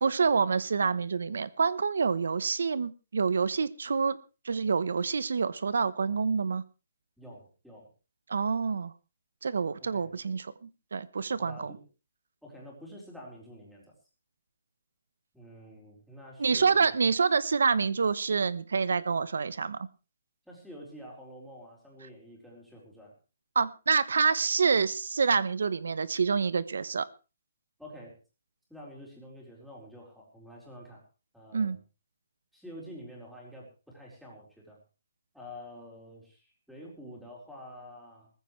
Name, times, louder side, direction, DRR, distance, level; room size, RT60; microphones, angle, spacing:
voice 1, 0.0-4.2 4.4-6.6 8.3-8.9 9.4-11.7 16.4-19.9 23.5-27.1 31.5-31.8, right 5 dB, 80° right, 17 dB, 1.0 m, -27 dB
voice 2, 7.2-7.9 9.8-10.2 11.4-11.8 12.4-13.9 15.3-16.9 20.5-23.2 27.8-28.2 28.7-31.0 31.3-31.8 32.5-34.8 35.3-38.3, equal, ahead, -3 dB, 4.3 m, -48 dB
19.5 x 15.0 x 3.3 m, 0.31 s
hypercardioid pair, 175°, 0 cm